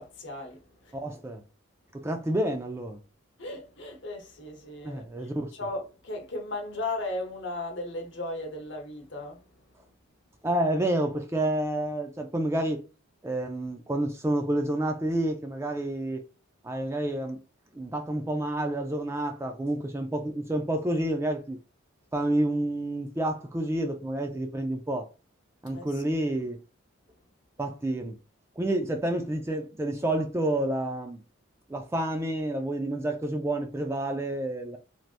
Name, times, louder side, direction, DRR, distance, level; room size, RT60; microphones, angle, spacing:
voice 1, 0.0-1.0 3.4-9.9 25.7-26.0, left 2 dB, 60° left, 0.9 m, -37 dB
voice 2, 0.9-1.4 1.9-3.0 4.8-5.5 10.4-12.8 13.2-16.2 16.6-17.4 17.7-21.6 22.1-25.1 25.6-26.6 27.6-28.2 28.6-31.2 31.7-34.8, right 1 dB, 15° right, 0.3 m, -29 dB
3.3 x 2.7 x 2.4 m
head